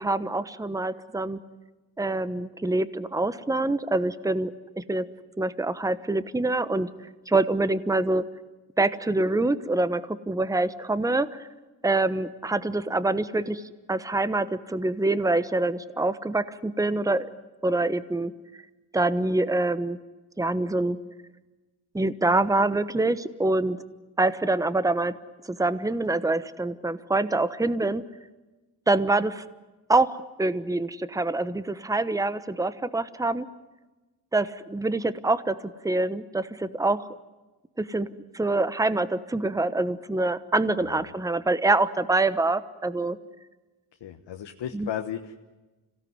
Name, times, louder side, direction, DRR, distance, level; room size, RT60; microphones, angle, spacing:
voice 1, 0.0-1.4 2.0-5.1 5.4-6.9 7.3-8.2 8.8-11.5 11.8-13.6 13.9-17.3 17.6-18.3 18.9-20.0 20.4-21.0 21.9-23.8 24.2-25.1 25.4-28.0 28.9-29.4 29.9-33.5 34.3-35.6 35.8-37.1 37.8-38.1 38.3-43.2 44.7-44.9, right 2 dB, 5° right, 14 dB, 1.1 m, -25 dB
voice 2, 44.0-45.3, left 9 dB, 65° left, 5 dB, 1.4 m, -35 dB
26.0 x 17.0 x 9.6 m, 1.2 s
cardioid pair, 70°, 46 cm